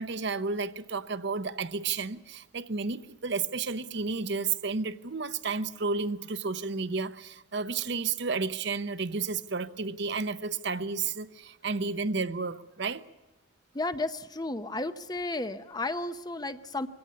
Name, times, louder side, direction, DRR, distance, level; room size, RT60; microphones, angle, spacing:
voice 1, 0.0-13.0, right 4 dB, 55° right, 0.8 m, -32 dB
voice 2, 13.7-16.9, left 2 dB, 20° left, 0.7 m, -33 dB
23.0 x 17.5 x 8.4 m
head